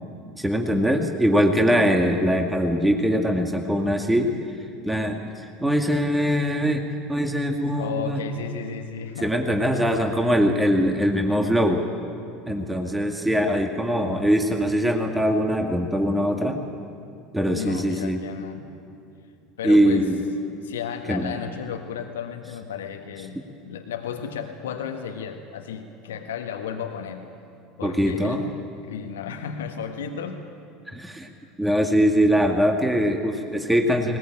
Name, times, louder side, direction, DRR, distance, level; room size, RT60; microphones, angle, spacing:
voice 1, 0.4-4.3 4.8-6.8 7.1-8.2 9.2-11.9 12.5-16.6 17.3-18.2 19.6-20.3 21.1-21.3 27.8-28.4 30.9-31.3 31.6-34.2, equal, 5° right, 3 dB, 2.1 m, -22 dB
voice 2, 7.7-9.4 17.5-18.7 19.6-20.1 20.6-23.4 23.6-27.3 27.8-28.5 28.8-30.4, left 7 dB, 75° left, 5 dB, 1.4 m, -33 dB
21.0 x 19.5 x 8.9 m, 2.6 s
figure-of-eight pair, 70°, 0 cm